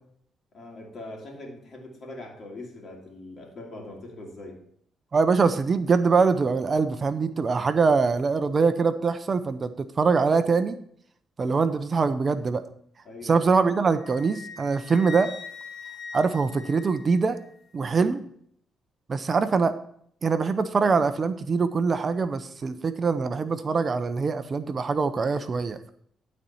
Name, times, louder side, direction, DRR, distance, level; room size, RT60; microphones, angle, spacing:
voice 1, 0.5-4.6 13.0-13.5, left 2 dB, 50° left, 1 dB, 2.6 m, -41 dB
voice 2, 5.1-10.8 11.4-12.6 13.2-15.3 16.1-17.4 17.7-18.2 19.1-19.8 20.2-25.8, right 4 dB, 40° right, 11 dB, 0.6 m, -23 dB
Wind instrument woodwind instrument, 14.0-17.5, left 5 dB, 65° left, 1.0 m, -41 dB
12.0 x 4.3 x 5.5 m, 0.66 s
cardioid pair, 90°, 0 cm